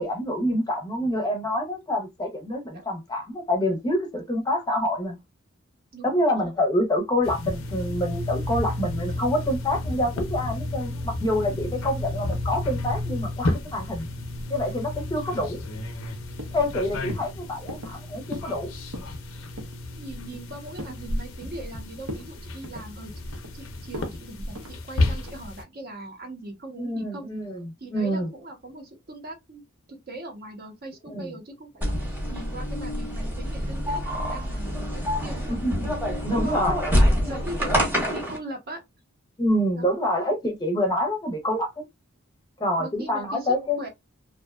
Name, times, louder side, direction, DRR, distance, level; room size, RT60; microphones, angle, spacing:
voice 1, 0.0-5.2 6.0-14.1 14.5-15.6 16.5-18.7 26.8-28.3 31.1-31.3 35.5-35.9 36.2-37.2 39.4-41.8 42.6-43.9, left 1 dB, 20° left, 0.6 m, -27 dB
sound 1, 7.2-25.6, left 2 dB, 80° left, 0.6 m, -32 dB
voice 2, 11.6-11.9 20.0-23.1 23.5-27.3 27.8-29.6 29.9-35.6 36.3-36.9 37.1-38.8 39.7-39.9 42.8-43.9, right 1 dB, 50° right, 0.7 m, -40 dB
sound 2, 15.5-16.1 16.4-16.7 17.1-17.3 17.7-18.0 18.3-18.6 18.8-19.2 19.6-19.8 20.2-21.0 21.4-21.8 22.0-22.3 22.6-23.5 23.9-24.1 24.5-24.8 25.2-25.5, right 1 dB, 90° right, 0.7 m, -39 dB
sound 3, 31.8-38.4, equal, 10° right, 0.9 m, -26 dB
2.6 x 2.2 x 2.2 m
head